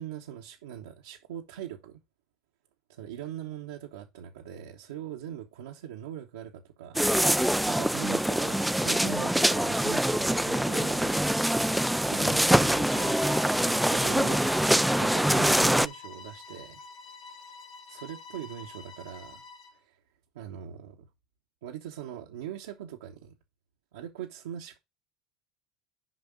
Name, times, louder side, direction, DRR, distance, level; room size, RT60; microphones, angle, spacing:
voice 1, 0.0-2.0 2.9-7.0 7.7-11.4 12.1-16.8 17.9-19.4 19.7-20.0 20.3-21.1 21.6-23.3 23.9-24.8, right 10 dB, 80° right, 1.0 m, -41 dB
sound 1, 6.9-15.9, right 1 dB, 5° right, 0.4 m, -24 dB
Bowed string instrument, 12.8-19.8, left 4 dB, 50° left, 2.0 m, -47 dB
6.2 x 5.1 x 5.0 m
hypercardioid pair, 85°, 0 cm